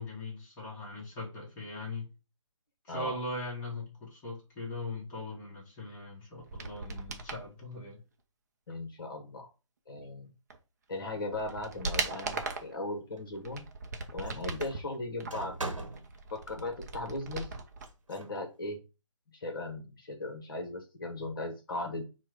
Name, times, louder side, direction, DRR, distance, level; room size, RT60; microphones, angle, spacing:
voice 1, 0.0-2.1 2.8-8.0, left 2 dB, 15° left, 1.1 m, -40 dB
sound 1, 6.4-7.4 10.5-10.6 11.1-12.8 13.3-14.8 15.2-17.9 18.1-18.2, right 4 dB, 35° right, 0.6 m, -38 dB
voice 2, 8.7-9.5 9.9-10.3 10.9-13.6 14.1-15.6 16.3-17.5 18.1-18.8 19.3-22.0, left 2 dB, 45° left, 1.0 m, -37 dB
sound 2, 12.9-13.5 14.2-16.2 17.8-18.4, right 2 dB, 80° right, 1.0 m, -41 dB
4.4 x 2.2 x 4.6 m
figure-of-eight pair, 145°, 17 cm